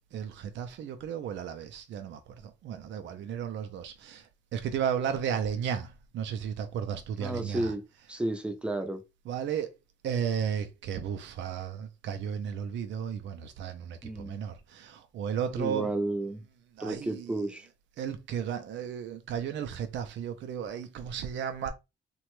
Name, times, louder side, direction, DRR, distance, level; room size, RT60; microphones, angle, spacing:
voice 1, 0.1-4.3 4.5-7.7 9.3-9.7 10.0-15.9 16.8-17.3 18.0-21.7, right 8 dB, 65° right, 0.5 m, -34 dB
voice 2, 7.2-9.0 14.0-14.4 15.6-16.4 16.8-17.7, right 1 dB, 5° right, 0.6 m, -32 dB
2.9 x 2.2 x 3.0 m
cardioid pair, 90°, 20 cm